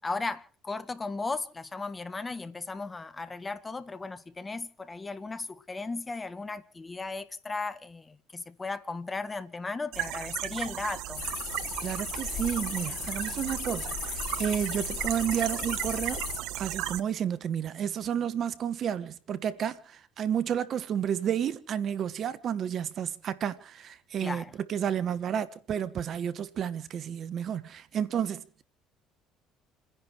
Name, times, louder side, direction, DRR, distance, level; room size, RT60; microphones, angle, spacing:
voice 1, 0.0-11.2 24.2-24.5, left 3 dB, 25° left, 1.6 m, -36 dB
sound 1, 9.9-17.0, right 14 dB, 75° right, 1.0 m, -36 dB
sound 2, 11.1-16.4, left 7 dB, 55° left, 5.3 m, -36 dB
voice 2, 11.8-16.2 16.6-24.4 24.7-28.6, right 9 dB, 55° right, 1.3 m, -31 dB
29.5 x 10.5 x 4.6 m
hypercardioid pair, 70°, 0 cm